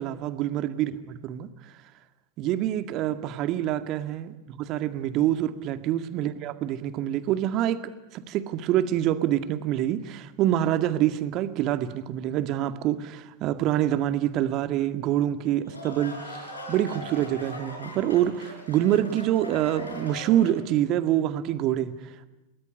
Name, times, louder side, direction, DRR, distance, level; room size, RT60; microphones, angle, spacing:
voice 1, 0.0-1.5 2.4-7.8 8.1-22.2, right 12 dB, 40° right, 10 dB, 2.0 m, -26 dB
sound 1, 15.4-20.8, equal, 75° left, 5.1 m, -40 dB
29.0 x 20.0 x 9.8 m, 1.0 s
figure-of-eight pair, 90°, 0 cm